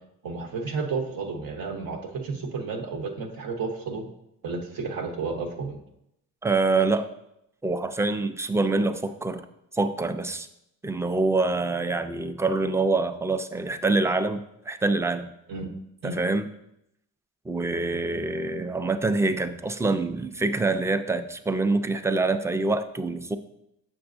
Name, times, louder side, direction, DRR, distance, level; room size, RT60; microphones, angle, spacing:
voice 1, 0.2-4.1 4.4-5.8 15.5-15.7 16.0-16.2, right 4 dB, 75° right, 4 dB, 1.0 m, -32 dB
voice 2, 6.4-7.1 7.6-9.5 9.7-10.5 10.8-15.3 16.0-16.5 17.5-23.4, right 3 dB, 10° right, 10 dB, 0.4 m, -25 dB
6.9 x 6.2 x 2.6 m, 0.81 s
cardioid pair, 75°, 35 cm